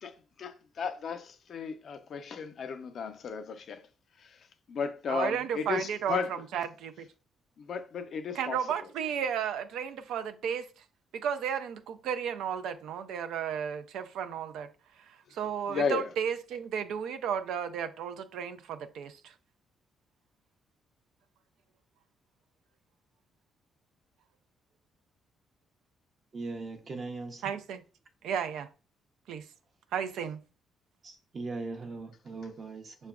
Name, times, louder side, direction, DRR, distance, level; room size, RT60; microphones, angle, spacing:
voice 1, 0.0-3.9 4.2-4.4 4.7-6.4 7.6-8.6 15.7-16.1, left 5 dB, 60° left, 0.5 m, -34 dB
voice 2, 5.1-7.1 8.3-10.7 11.1-14.7 15.1-19.3 27.4-27.8 28.2-28.7 29.3-29.4 29.9-30.4, right 8 dB, 85° right, 0.3 m, -33 dB
voice 3, 26.3-27.4 31.0-33.1, right 3 dB, 45° right, 0.7 m, -39 dB
5.7 x 2.1 x 2.3 m
cardioid pair, 90°, 0 cm